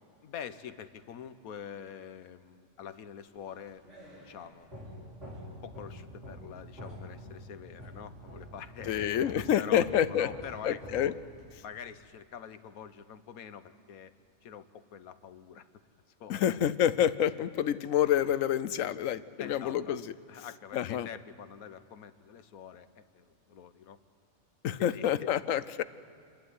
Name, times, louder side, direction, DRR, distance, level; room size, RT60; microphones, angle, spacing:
voice 1, 0.2-3.8 4.2-4.7 5.6-11.1 11.6-14.1 14.4-15.7 16.2-16.5 19.4-20.0 20.3-24.0 24.8-25.4, left 8 dB, 90° left, 12 dB, 1.3 m, -45 dB
sound 1, 3.4-11.6, equal, 55° right, 6.6 m, -47 dB
voice 2, 8.9-10.3 10.6-11.1 16.3-20.1 20.7-21.1 24.6-25.8, left 10 dB, 75° left, 15 dB, 1.0 m, -28 dB
28.0 x 12.0 x 9.5 m, 2.5 s
omnidirectional pair, 1.5 m